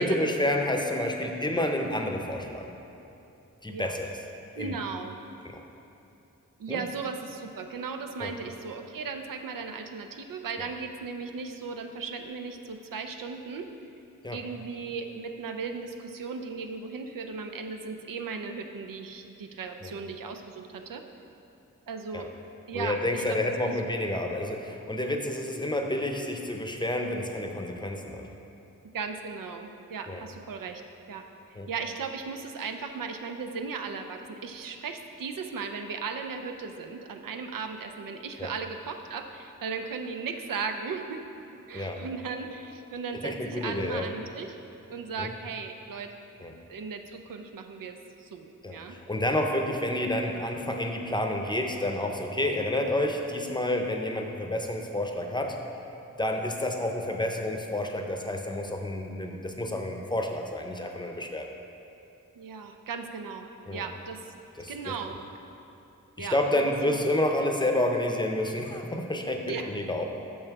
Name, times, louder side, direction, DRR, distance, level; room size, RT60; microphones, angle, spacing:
voice 1, 0.0-2.7 3.6-4.1 4.6-4.8 5.4-5.6 6.7-6.8 8.2-8.3 14.2-14.4 19.8-19.9 22.1-22.2 22.7-28.3 30.1-30.2 31.6-31.7 38.4-38.5 41.7-42.0 43.2-44.0 45.2-45.3 46.4-46.5 48.6-55.6 56.2-61.5 63.7-63.8 64.6-64.9 66.2-70.0, left 1 dB, 15° left, 3 dB, 0.7 m, -29 dB
voice 2, 4.6-5.2 6.6-13.7 14.3-21.0 21.9-22.3 22.7-23.4 23.6-23.9 28.9-30.8 31.1-41.2 41.7-44.6 44.9-46.1 46.7-49.0 62.4-64.3 64.7-65.2 66.2-67.0 69.4-69.8, right 5 dB, 85° right, 6 dB, 0.6 m, -37 dB
6.6 x 5.5 x 4.7 m, 2.9 s
cardioid pair, 60°, 32 cm